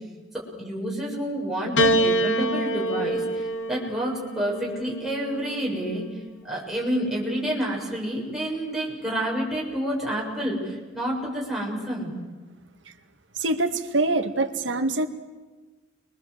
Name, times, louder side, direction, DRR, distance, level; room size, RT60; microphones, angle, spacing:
voice 1, 0.6-6.1 6.4-12.1, equal, ahead, -4 dB, 7.2 m, -29 dB
Piano, 1.8-6.3 7.3-8.0, right 1 dB, 80° left, 1.9 m, -27 dB
voice 2, 13.4-15.1, right 2 dB, 80° right, 6 dB, 2.0 m, -24 dB
29.5 x 23.5 x 8.1 m, 1.3 s
head